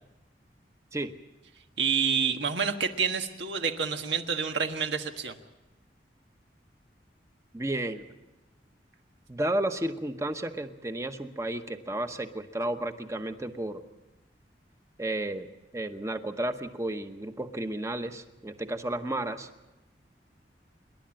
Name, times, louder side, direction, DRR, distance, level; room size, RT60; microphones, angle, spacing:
voice 1, 1.8-5.4, right 6 dB, 85° right, 6 dB, 1.6 m, -28 dB
voice 2, 7.5-8.0 9.3-13.8 15.0-15.5 15.7-19.5, right 1 dB, 15° right, 8 dB, 0.9 m, -32 dB
27.0 x 11.5 x 8.8 m, 1.0 s
head